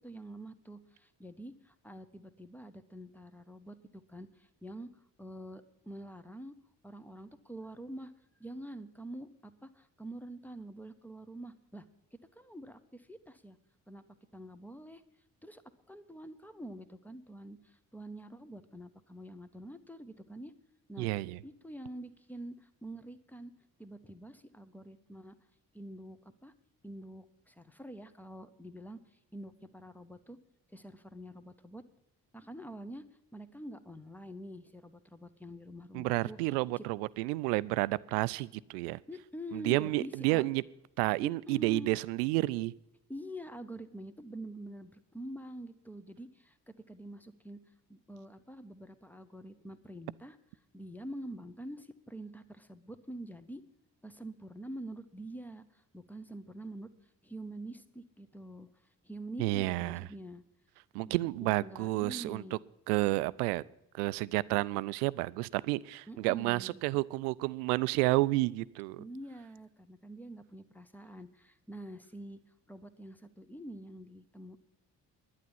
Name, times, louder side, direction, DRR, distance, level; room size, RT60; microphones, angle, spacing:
voice 1, 0.0-6.5 6.8-8.1 8.4-11.9 12.3-13.6 13.9-14.0 14.3-15.0 15.4-15.6 15.9-20.5 20.9-21.1 21.4-23.5 23.8-25.4 25.7-26.5 26.8-29.0 29.3-30.4 30.7-31.8 32.3-33.0 33.3-36.4 36.8-36.9 39.1-40.5 41.2-41.9 43.1-47.6 47.9-50.4 50.7-53.6 54.0-56.9 57.2-58.7 59.0-60.4 61.0-62.6 66.1-66.8 69.0-72.4 72.7-74.6, right 1 dB, 5° left, 12 dB, 1.2 m, -46 dB
voice 2, 21.0-21.4 35.9-39.0 39.5-40.6 41.0-42.7 59.4-60.1 60.9-62.6 62.9-63.6 64.0-69.0, right 20 dB, 75° right, 20 dB, 0.5 m, -30 dB
11.5 x 9.5 x 7.1 m, 0.85 s
figure-of-eight pair, 40°, 47 cm